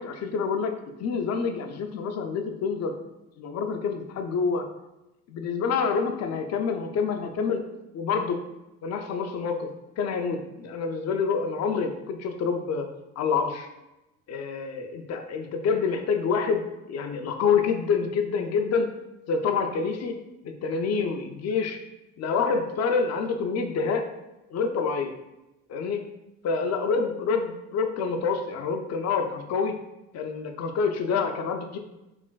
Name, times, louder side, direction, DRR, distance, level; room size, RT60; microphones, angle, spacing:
voice 1, 0.0-2.9 3.4-4.7 5.3-7.6 7.9-8.4 8.8-12.9 13.2-13.7 14.3-18.9 19.3-20.2 20.4-21.8 22.2-24.1 24.5-25.1 25.7-26.1 26.4-29.8 30.1-31.8, left 5 dB, 45° left, 5 dB, 0.5 m, -27 dB
3.2 x 2.4 x 2.2 m, 0.95 s
supercardioid pair, 80°, 37 cm